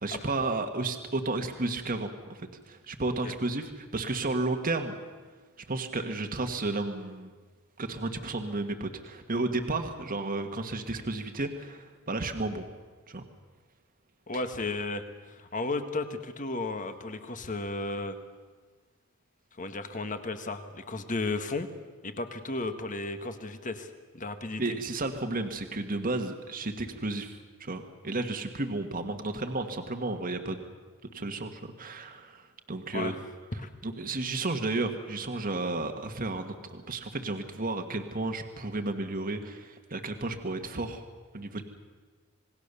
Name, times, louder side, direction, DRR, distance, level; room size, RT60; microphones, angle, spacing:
voice 1, 0.0-5.0 5.7-7.3 7.8-12.6 13.1-13.2 24.6-30.6 31.1-33.2 33.8-41.0 41.3-41.6, right 2 dB, 40° right, 6 dB, 1.6 m, -32 dB
voice 2, 14.3-18.2 19.6-21.7 22.0-24.8 32.9-33.2 33.6-33.7, left 2 dB, 40° left, 8 dB, 1.6 m, -34 dB
26.5 x 19.5 x 6.9 m, 1.4 s
head